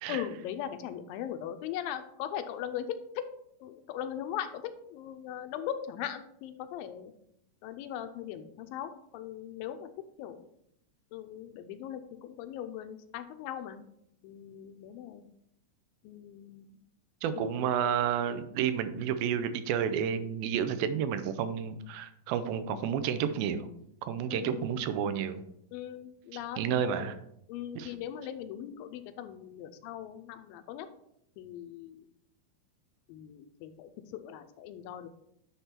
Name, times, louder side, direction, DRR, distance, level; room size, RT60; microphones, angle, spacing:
voice 1, 0.1-2.9 3.2-3.3 3.6-4.6 4.9-7.1 7.6-9.9 10.2-10.4 11.1-13.9 14.2-15.2 16.0-16.8 17.4-17.6 24.3-24.7 25.7-27.1 27.5-30.9 31.4-32.0 33.1-35.1, left 10 dB, 85° left, 9 dB, 2.3 m, -39 dB
voice 2, 17.2-23.7 24.0-25.4 26.6-27.2 27.8-27.9, right 8 dB, 90° right, 10 dB, 2.5 m, -31 dB
10.0 x 3.5 x 4.3 m, 0.75 s
omnidirectional pair, 4.2 m